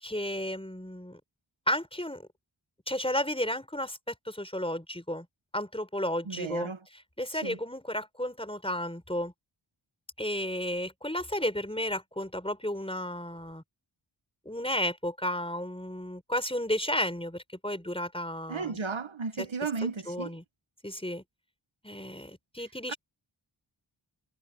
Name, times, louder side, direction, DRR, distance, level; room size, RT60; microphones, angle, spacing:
voice 1, 0.0-1.2 1.7-2.2 2.9-5.3 5.5-9.3 10.2-13.6 14.4-18.8 19.4-19.5 19.8-20.4 20.8-21.2 21.8-23.0, left 1 dB, 10° left, 5.0 m, -33 dB
voice 2, 6.3-6.8 7.4-7.6 18.5-20.3 22.9-23.0, right 5 dB, 75° right, 1.3 m, -34 dB
wide cardioid pair, 45°, 47 cm